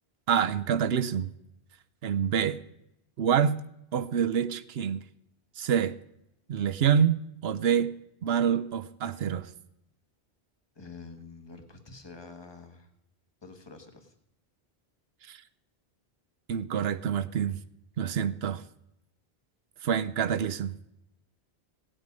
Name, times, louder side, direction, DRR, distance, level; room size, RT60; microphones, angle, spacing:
voice 1, 0.3-1.3 2.0-2.6 3.2-3.6 3.9-5.0 5.6-6.0 6.5-7.9 8.2-9.5 15.3-15.4 16.5-17.6 18.0-18.6 19.8-20.8, right 8 dB, 75° right, 0.9 m, -27 dB
voice 2, 10.7-12.9 13.4-14.1, left 4 dB, 25° left, 1.5 m, -47 dB
17.0 x 8.9 x 5.2 m
omnidirectional pair, 1.1 m